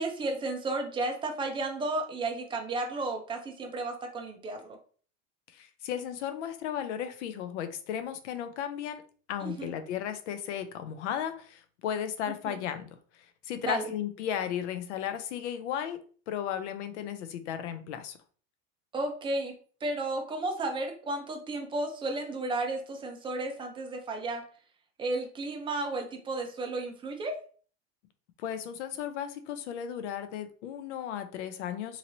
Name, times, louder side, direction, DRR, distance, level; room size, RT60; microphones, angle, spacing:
voice 1, 0.0-4.8 9.4-9.7 12.4-12.6 13.6-13.8 18.9-19.5 19.8-24.4 25.0-27.4, right 2 dB, 15° right, 0.5 m, -33 dB
voice 2, 5.5-9.0 9.3-12.9 13.1-16.0 16.3-18.2 28.4-32.0, left 9 dB, 85° left, 0.6 m, -35 dB
2.9 x 2.8 x 2.7 m
supercardioid pair, 135°, 35 cm